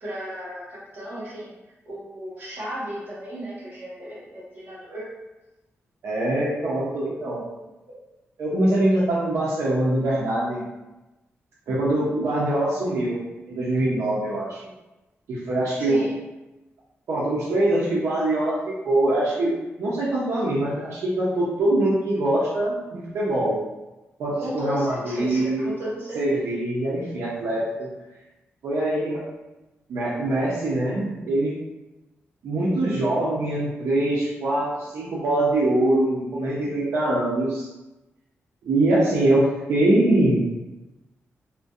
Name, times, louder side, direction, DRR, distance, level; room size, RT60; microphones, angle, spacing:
voice 1, 0.0-1.5 1.8-5.1 15.8-16.1 24.4-26.4, equal, 45° right, -8 dB, 1.1 m, -34 dB
voice 2, 6.0-7.4 8.4-10.6 11.7-13.2 13.5-14.6 15.3-16.0 17.1-23.6 24.2-25.7 26.2-27.9 28.6-29.3 29.9-31.5 32.4-37.7 38.6-40.4, right 1 dB, 85° right, -7 dB, 0.5 m, -23 dB
2.5 x 2.1 x 2.3 m, 1.0 s
wide cardioid pair, 155°, 5 cm